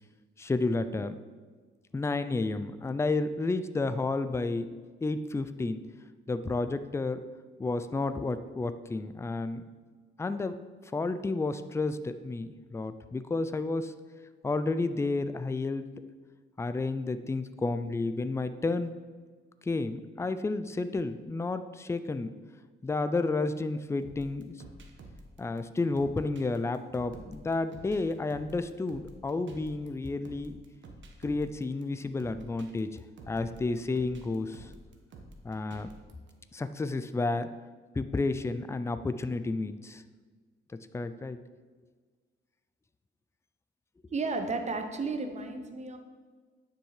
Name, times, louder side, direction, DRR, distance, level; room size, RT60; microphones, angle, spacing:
voice 1, 0.4-1.2 1.9-4.7 5.0-5.9 6.3-7.2 7.6-9.6 10.2-10.6 10.8-13.9 14.4-15.9 16.6-19.0 19.6-22.3 22.8-24.6 25.4-30.6 31.2-34.7 35.4-35.9 36.5-37.5 38.0-40.0 40.7-41.4, left 3 dB, 15° left, 11 dB, 0.4 m, -31 dB
sound 1, 24.0-36.3, right 2 dB, 65° right, 1.4 m, -50 dB
voice 2, 44.1-46.0, right 3 dB, 35° right, 6 dB, 1.1 m, -33 dB
9.9 x 6.3 x 4.9 m, 1.5 s
cardioid pair, 110°, 21 cm